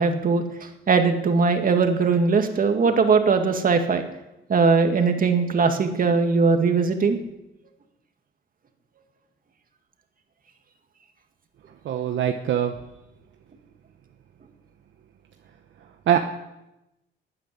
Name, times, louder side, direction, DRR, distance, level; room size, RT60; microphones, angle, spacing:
voice 1, 0.0-4.0 4.5-7.2, right 4 dB, 45° right, 5 dB, 2.1 m, -20 dB
voice 2, 11.8-12.7 16.1-16.2, right 10 dB, 70° right, 5 dB, 1.1 m, -22 dB
13.0 x 9.2 x 9.6 m, 0.92 s
cardioid pair, 90°, 20 cm